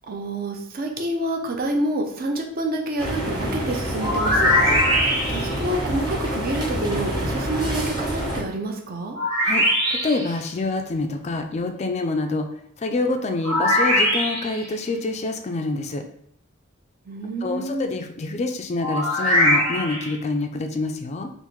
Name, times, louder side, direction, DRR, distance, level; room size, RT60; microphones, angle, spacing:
voice 1, 0.1-4.8 5.3-9.2 17.1-17.9, right 1 dB, 45° right, 2 dB, 0.6 m, -28 dB
sound 1, 3.0-8.4, equal, 20° right, 1.0 m, -27 dB
sound 2, 4.0-5.6 9.1-10.3 13.4-14.7 18.8-20.1, left 1 dB, 70° right, 1.1 m, -21 dB
voice 2, 9.4-12.5 12.8-16.0 17.4-21.3, left 2 dB, 30° left, 5 dB, 0.3 m, -26 dB
3.5 x 2.5 x 3.0 m, 0.70 s
head